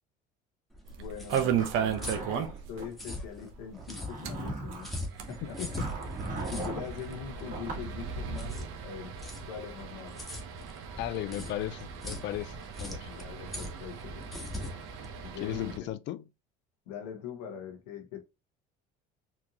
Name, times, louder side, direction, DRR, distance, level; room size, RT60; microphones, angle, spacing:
sound 1, 0.7-15.9, left 1 dB, ahead, 1.3 m, -42 dB
sound 2, 0.9-2.8 3.1-3.2 3.5-3.6 4.1-15.8, right 8 dB, 65° right, 0.9 m, -36 dB
voice 1, 1.0-2.3 2.7-4.9 5.3-5.6 6.5-9.1 9.5-10.3 13.0-14.8 15.2-15.9 16.9-18.2, left 8 dB, 85° left, 1.2 m, -42 dB
Zipper (clothing), 1.4-2.9 3.7-5.0 5.8-6.9 7.5-7.9, right 2 dB, 40° right, 2.0 m, -38 dB
voice 2, 5.4-5.9 11.0-13.1 15.4-16.2, left 13 dB, 60° left, 0.5 m, -36 dB
4.4 x 2.5 x 2.9 m
supercardioid pair, 85°, 21 cm